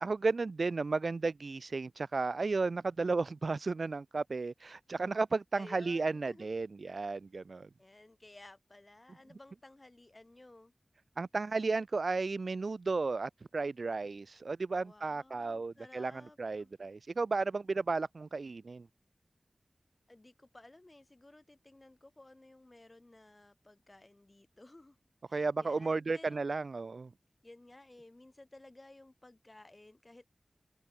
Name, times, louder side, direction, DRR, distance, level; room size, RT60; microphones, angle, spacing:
voice 1, 0.0-7.7 11.2-18.9 25.3-27.1, right 3 dB, 65° right, 1.5 m, -34 dB
voice 2, 5.6-6.7 7.8-10.7 14.8-16.7 20.1-25.0 25.3-26.6 27.4-30.5, left 2 dB, 30° left, 7.3 m, -56 dB
wide cardioid pair, 80°, 0 cm